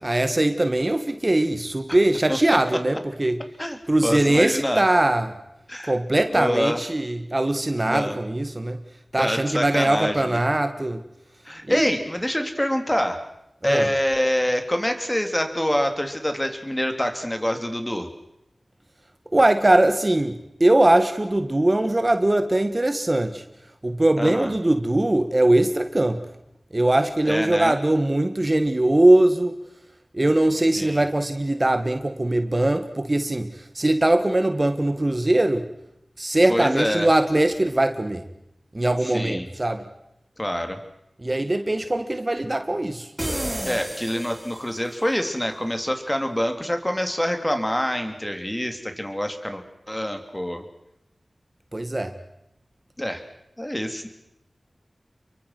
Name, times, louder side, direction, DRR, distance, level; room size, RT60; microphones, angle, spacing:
voice 1, 0.0-3.4 3.9-5.3 5.8-8.8 9.1-11.0 11.7-11.9 13.6-13.9 19.3-23.4 23.8-26.2 26.7-29.6 30.1-35.7 36.2-38.2 38.7-39.9 41.2-43.1 51.7-52.1, right 1 dB, 35° right, 8 dB, 1.7 m, -21 dB
voice 2, 4.0-4.8 5.7-5.9 6.3-6.8 7.9-8.2 9.2-10.4 11.5-13.2 13.6-18.1 24.2-24.5 27.3-27.7 30.8-31.0 36.5-37.1 39.1-39.5 40.4-40.8 43.7-50.6 53.0-53.2 53.6-54.1, equal, 15° left, 6 dB, 3.4 m, -26 dB
sound 1, 43.2-45.0, right 1 dB, 15° right, 4.1 m, -31 dB
29.0 x 23.5 x 6.1 m, 0.86 s
wide cardioid pair, 45°, 0 cm